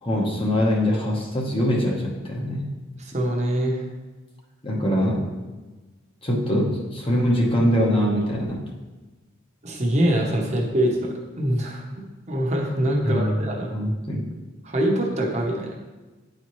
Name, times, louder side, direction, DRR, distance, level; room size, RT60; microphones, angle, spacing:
voice 1, 0.0-2.7 4.6-5.2 6.2-8.7 13.0-13.3 13.7-14.3, equal, 25° left, -2 dB, 0.9 m, -23 dB
voice 2, 3.0-3.8 9.6-13.7 14.6-15.8, right 1 dB, 35° right, -1 dB, 0.8 m, -24 dB
9.5 x 4.2 x 3.1 m, 1.2 s
head